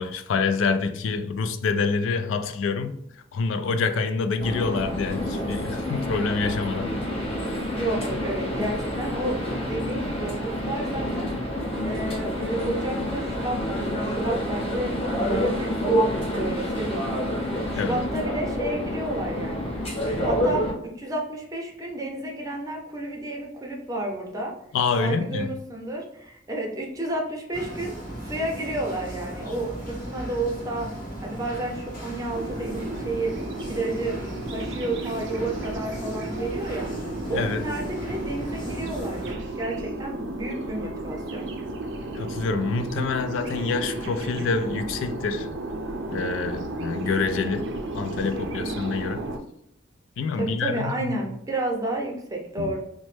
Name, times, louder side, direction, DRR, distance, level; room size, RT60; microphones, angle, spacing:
voice 1, 0.0-3.0 3.3-7.0 17.7-18.0 24.7-25.5 37.3-37.6 42.1-45.5 46.1-47.7 47.9-49.2 50.2-51.2 52.6-52.7, left 4 dB, 80° left, 0.3 m, -26 dB
sound 1, 4.4-20.7, left 1 dB, 30° left, 1.1 m, -28 dB
voice 2, 7.7-11.3 11.8-16.1 16.3-17.2 17.7-19.7 20.2-20.7 21.0-24.5 25.0-28.0 28.2-30.9 31.2-33.3 33.7-34.1 34.5-36.9 37.3-41.5 50.4-52.8, right 2 dB, 20° right, 0.6 m, -31 dB
sound 2, 27.5-39.3, right 1 dB, 50° left, 1.5 m, -36 dB
sound 3, 32.3-49.4, right 2 dB, 65° right, 0.5 m, -34 dB
3.0 x 2.1 x 3.1 m
head